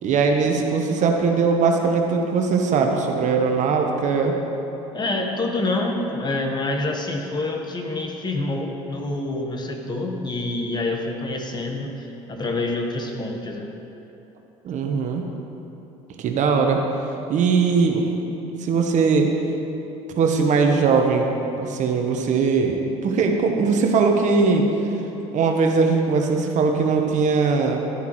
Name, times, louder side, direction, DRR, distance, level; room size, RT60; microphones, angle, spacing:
voice 1, 0.0-4.3 14.6-15.3 16.2-16.8 17.3-18.0 18.6-19.3 20.2-24.7 25.3-27.9, right 4 dB, 50° right, 3 dB, 1.1 m, -20 dB
voice 2, 4.9-13.7, left 2 dB, 30° left, 2 dB, 1.2 m, -27 dB
11.5 x 9.3 x 3.1 m, 3.0 s
hypercardioid pair, 80°, 16 cm